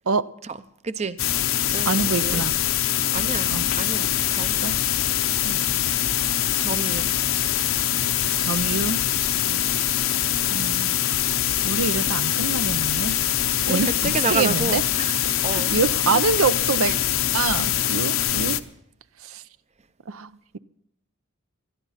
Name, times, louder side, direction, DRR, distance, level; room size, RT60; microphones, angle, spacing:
voice 1, 0.8-1.2 1.7-2.5 3.1-4.6 6.6-7.1 9.4-9.7 13.6-15.2 15.4-15.7, right 4 dB, 30° right, 14 dB, 0.6 m, -30 dB
sound 1, 1.2-18.6, left 11 dB, 65° left, 0.7 m, -23 dB
voice 2, 1.9-2.6 3.5-3.7 4.6-4.8 5.4-5.6 8.4-9.0 10.5-11.0 11.6-13.2 13.7-14.8 15.5-17.0 17.3-18.6 19.2-19.4 20.1-20.6, right 4 dB, 70° right, 15 dB, 0.6 m, -25 dB
20.5 x 13.0 x 4.1 m, 0.73 s
head